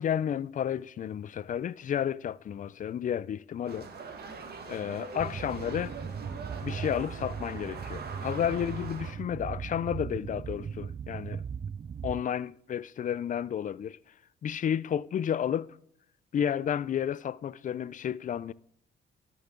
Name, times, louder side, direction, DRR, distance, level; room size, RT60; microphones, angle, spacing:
voice 1, 0.0-3.9 4.7-6.0 6.6-11.4 12.0-14.0 14.4-15.7 16.3-18.5, left 9 dB, 40° left, 0.4 m, -31 dB
sound 1, 3.6-9.1, right 4 dB, 55° right, 1.7 m, -42 dB
sound 2, 5.2-12.2, right 7 dB, 30° right, 0.3 m, -38 dB
12.5 x 7.0 x 3.8 m
cardioid pair, 90°, 20 cm